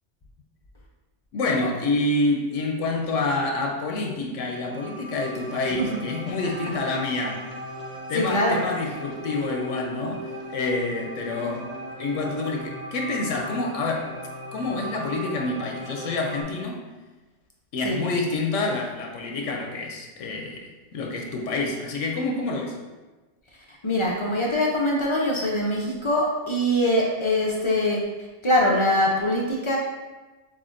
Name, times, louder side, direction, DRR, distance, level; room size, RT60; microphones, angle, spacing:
voice 1, 1.3-7.4 8.1-11.7 12.0-14.1 14.5-16.8 17.7-20.7 20.9-22.8, left 3 dB, 90° left, 1 dB, 1.0 m, -27 dB
sound 1, 4.4-16.4, right 1 dB, 40° right, 0.6 m, -38 dB
voice 2, 8.1-8.6 17.8-18.0 23.7-28.0 28.4-29.8, left 1 dB, 50° left, -2 dB, 0.3 m, -23 dB
7.0 x 2.4 x 2.5 m, 1.2 s
omnidirectional pair, 1.3 m